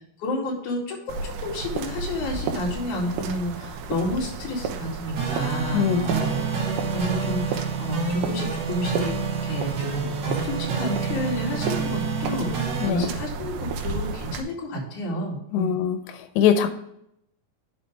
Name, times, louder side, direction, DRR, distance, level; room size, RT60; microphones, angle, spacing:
voice 1, 0.2-9.2 9.4-15.8, left 1 dB, 50° left, -3 dB, 3.6 m, -31 dB
sound 1, 1.1-14.4, right 5 dB, 85° right, 3.1 m, -33 dB
sound 2, 5.2-12.9, right 5 dB, 50° right, 3.1 m, -28 dB
voice 2, 5.7-6.1 12.8-13.1 15.5-16.0 16.4-16.7, left 8 dB, 85° left, 8 dB, 3.1 m, -21 dB
10.0 x 5.8 x 3.4 m, 0.74 s
omnidirectional pair, 4.9 m